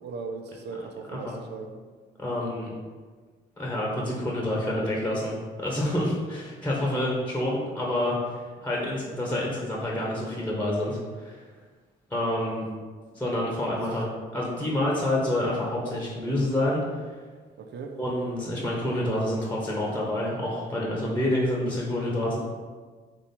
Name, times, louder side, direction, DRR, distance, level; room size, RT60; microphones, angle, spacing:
voice 1, 0.0-1.8 17.6-17.9, right 4 dB, 60° right, 4 dB, 0.6 m, -38 dB
voice 2, 2.2-2.7 3.6-5.3 5.6-11.4 12.1-12.6 13.1-14.1 14.3-17.0 18.0-22.4, left 1 dB, 10° left, -4 dB, 1.2 m, -28 dB
3.8 x 3.0 x 4.3 m, 1.5 s
supercardioid pair, 70°, 20 cm